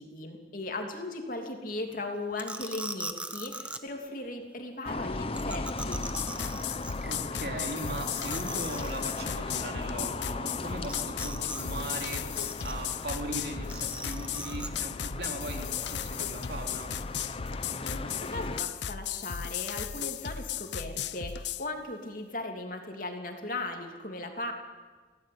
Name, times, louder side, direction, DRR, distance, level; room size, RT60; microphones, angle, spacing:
voice 1, 0.0-6.0 17.5-24.5, left 2 dB, 50° left, 3 dB, 2.9 m, -37 dB
sound 1, 2.4-3.8 5.3-7.2 7.5-7.6 7.9-8.0 8.2-9.2 10.8-11.6 11.9-12.9 13.7-14.7, right 2 dB, 5° right, 1.0 m, -40 dB
sound 2, 4.8-18.6, left 2 dB, 30° left, 0.7 m, -38 dB
sound 3, 5.8-21.7, left 8 dB, 75° left, 0.7 m, -36 dB
voice 2, 7.0-16.9, right 1 dB, 60° right, 3 dB, 3.4 m, -39 dB
25.0 x 17.0 x 8.7 m, 1.4 s
head